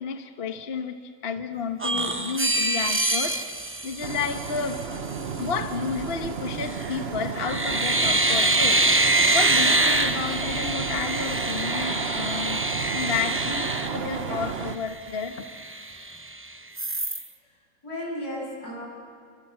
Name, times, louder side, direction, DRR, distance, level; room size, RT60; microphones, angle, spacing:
voice 1, 0.0-3.4 3.8-4.8 5.4-12.6 12.9-15.5, left 5 dB, 45° left, 6 dB, 1.2 m, -31 dB
sound 1, 1.8-4.8 6.6-7.0 7.4-14.6 15.1-15.2 15.4-16.3 16.8-17.2, right 2 dB, 15° right, 0.5 m, -25 dB
sound 2, 4.0-14.8, right 6 dB, 45° right, 1.1 m, -33 dB
voice 2, 13.8-14.6 17.8-18.9, equal, 80° left, -2 dB, 8.6 m, -35 dB
29.0 x 25.5 x 7.6 m, 2.3 s
omnidirectional pair, 1.6 m